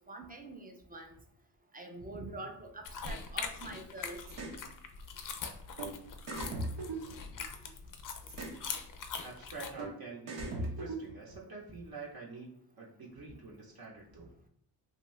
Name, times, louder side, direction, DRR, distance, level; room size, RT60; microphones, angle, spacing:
voice 1, 0.1-1.2 1.7-4.2, right 2 dB, 20° right, 4 dB, 0.4 m, -45 dB
sound 1, 2.8-9.7, left 5 dB, 50° left, 0.4 m, -42 dB
sound 2, 4.3-4.6 5.8-5.9 6.3-7.7 8.3-8.6 9.8-9.9 10.3-11.4, right 2 dB, 90° right, 0.8 m, -39 dB
voice 2, 9.2-14.3, right 3 dB, 60° right, -2 dB, 0.8 m, -47 dB
2.6 x 2.3 x 3.1 m, 0.64 s
cardioid pair, 80°, 42 cm